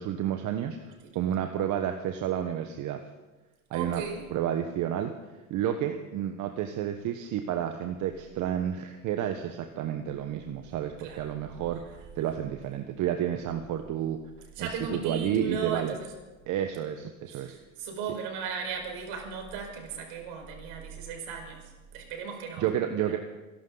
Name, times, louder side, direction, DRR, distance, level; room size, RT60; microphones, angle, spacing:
voice 1, 0.0-3.0 3.7-4.0 4.3-5.1 5.5-14.2 14.6-16.0 16.5-17.5 22.6-23.2, right 10 dB, 40° right, 6 dB, 1.3 m, -31 dB
voice 2, 3.7-4.3 11.0-11.3 14.5-16.1 17.3-21.6 21.9-23.2, right 6 dB, 60° right, 3 dB, 5.1 m, -36 dB
26.0 x 12.0 x 4.0 m, 1.2 s
hypercardioid pair, 105°, 43 cm